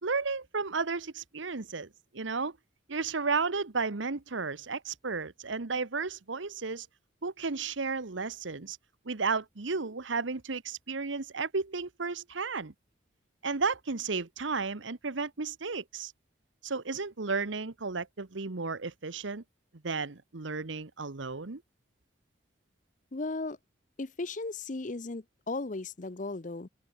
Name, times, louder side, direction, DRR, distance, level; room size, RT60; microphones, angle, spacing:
voice 1, 0.0-2.6 2.9-6.9 7.2-8.8 9.0-12.7 13.4-16.1 16.6-19.4 19.8-21.6, right 4 dB, 75° right, 1.1 m, -33 dB
voice 2, 23.1-23.6 24.0-26.7, left 3 dB, 40° left, 0.7 m, -36 dB
open air
head